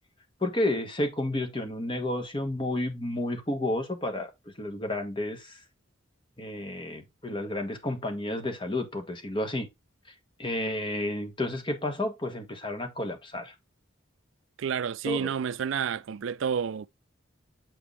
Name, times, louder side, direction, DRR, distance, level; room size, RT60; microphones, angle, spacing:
voice 1, 0.4-4.3 4.6-5.6 6.4-9.7 10.4-13.5 15.0-15.3, left 1 dB, 25° left, 1.5 m, -31 dB
voice 2, 14.6-16.9, right 7 dB, 70° right, 0.4 m, -30 dB
7.8 x 4.9 x 3.3 m
head